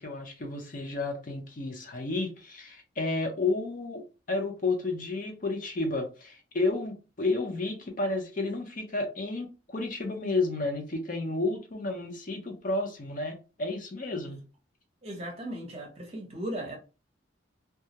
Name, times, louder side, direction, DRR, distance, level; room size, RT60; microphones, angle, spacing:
voice 1, 0.0-14.4, left 3 dB, 45° left, 0.6 m, -31 dB
voice 2, 15.0-16.8, right 1 dB, 35° right, 0.7 m, -37 dB
2.3 x 2.0 x 2.7 m
head